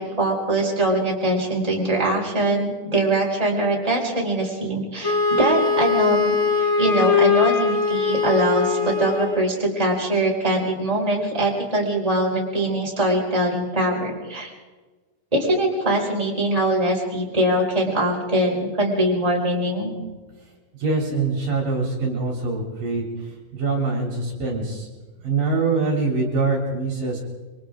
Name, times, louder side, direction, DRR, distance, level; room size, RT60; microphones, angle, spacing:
voice 1, 0.0-6.3 6.8-14.5 15.3-19.9, right 1 dB, 10° right, -2 dB, 5.1 m, -22 dB
Wind instrument woodwind instrument, 5.0-9.4, left 5 dB, 50° left, 2.8 m, -21 dB
voice 2, 20.8-23.0 23.5-24.9 25.2-27.2, right 3 dB, 55° right, 0 dB, 5.2 m, -24 dB
29.0 x 24.5 x 3.8 m, 1.3 s
omnidirectional pair, 4.6 m